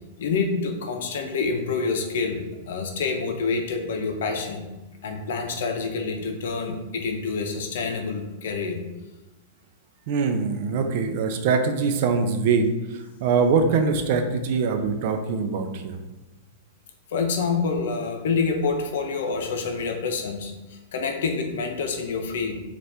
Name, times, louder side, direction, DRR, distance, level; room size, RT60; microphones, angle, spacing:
voice 1, 0.2-2.4 2.7-4.7 5.0-8.8 17.1-22.6, left 4 dB, 75° left, 4 dB, 0.7 m, -27 dB
voice 2, 10.1-12.7 13.2-16.0, right 5 dB, 55° right, 6 dB, 0.5 m, -23 dB
4.2 x 2.5 x 3.3 m, 1.1 s
hypercardioid pair, 140°, 0 cm